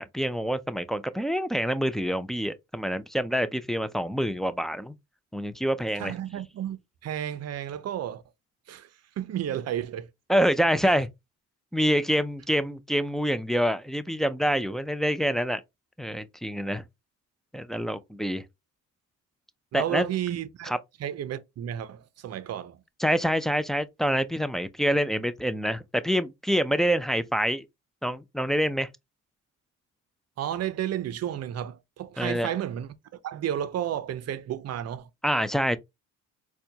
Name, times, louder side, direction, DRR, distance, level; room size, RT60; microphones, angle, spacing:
voice 1, 0.0-4.9 5.3-6.1 10.3-11.1 11.7-15.6 16.0-16.8 17.5-18.4 19.7-20.0 20.7-20.8 23.0-27.6 28.0-28.9 32.2-32.5 35.2-35.8, equal, ahead, 0.4 m, -26 dB
voice 2, 6.0-8.2 8.7-10.1 19.7-20.7 21.0-22.8 30.4-32.9 33.2-35.1, right 10 dB, 50° right, 0.6 m, -32 dB
4.2 x 2.3 x 2.8 m
supercardioid pair, 75°, 32 cm